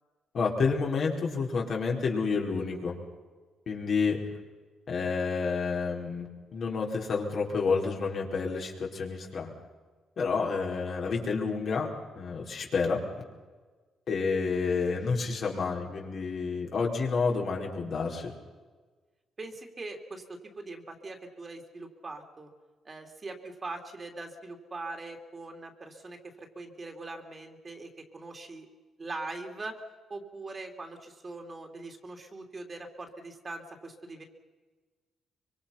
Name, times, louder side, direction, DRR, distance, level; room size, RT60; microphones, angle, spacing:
voice 1, 0.3-3.0 3.7-4.2 4.9-9.5 10.2-11.9 12.2-13.0 14.1-18.3, left 4 dB, 55° left, -1 dB, 4.7 m, -29 dB
voice 2, 19.4-22.5 22.9-28.7 29.0-29.8 30.1-34.2, right 2 dB, 30° right, 3 dB, 3.3 m, -42 dB
25.0 x 23.5 x 5.8 m, 1.4 s
cardioid pair, 90°, 0 cm